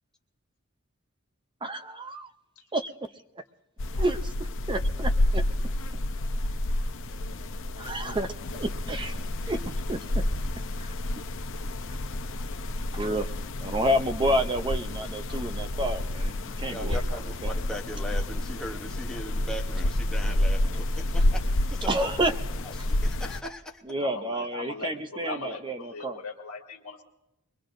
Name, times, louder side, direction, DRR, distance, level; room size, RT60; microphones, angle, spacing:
voice 1, 1.6-2.3 2.7-2.9 3.9-5.4 7.8-10.2 10.8-10.9 11.9-12.0 12.9-13.3 13.6-17.6 21.8-22.3 22.9-23.0 23.9-26.2, right 1 dB, 20° right, 10 dB, 0.5 m, -30 dB
sound 1, 3.8-23.4, left 1 dB, 60° left, 0.7 m, -29 dB
voice 2, 16.7-22.1 22.6-23.8, equal, 5° left, 0 dB, 0.8 m, -39 dB
voice 3, 24.0-27.0, left 3 dB, 80° left, 3 dB, 1.6 m, -39 dB
23.0 x 22.0 x 2.6 m, 0.94 s
head